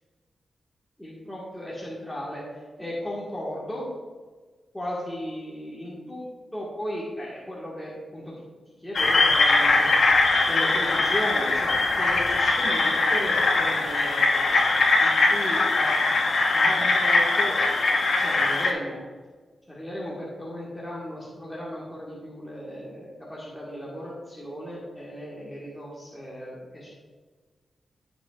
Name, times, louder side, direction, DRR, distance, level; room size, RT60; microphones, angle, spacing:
voice 1, 1.0-3.8 4.7-6.3 6.5-8.3 8.8-9.9 10.5-14.6 15.0-16.0 16.5-17.6 18.1-19.0 19.7-26.9, equal, 5° left, -6 dB, 1.6 m, -35 dB
sound 1, 8.9-18.7, left 3 dB, 55° left, 1.1 m, -21 dB
15.0 x 5.2 x 2.4 m, 1.4 s
wide cardioid pair, 125°, 0 cm